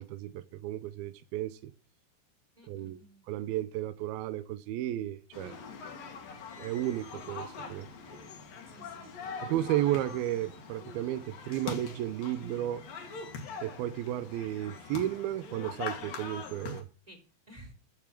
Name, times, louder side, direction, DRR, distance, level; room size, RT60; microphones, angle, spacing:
voice 1, 0.0-1.7 2.7-3.0 3.3-5.5 6.6-7.9 9.4-12.9 13.6-16.9, right 13 dB, 85° right, 2.2 m, -33 dB
voice 2, 2.6-3.2 8.7-9.4 17.1-17.7, right 1 dB, 10° right, 3.0 m, -54 dB
sound 1, 5.3-16.8, left 5 dB, 55° left, 3.5 m, -43 dB
14.5 x 7.2 x 6.0 m
omnidirectional pair, 5.3 m